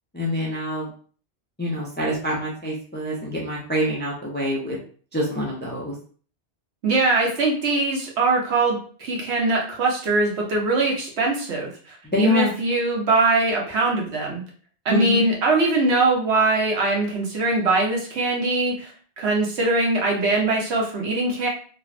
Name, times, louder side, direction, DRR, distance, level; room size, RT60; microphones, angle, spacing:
voice 1, 0.1-0.9 1.6-4.8 5.1-5.9 12.0-12.5 14.9-15.2, equal, 15° left, -4 dB, 0.3 m, -25 dB
voice 2, 6.8-14.4 14.8-18.9 19.2-21.5, right 2 dB, 85° right, -1 dB, 1.1 m, -22 dB
3.0 x 2.1 x 2.4 m, 0.43 s
omnidirectional pair, 1.1 m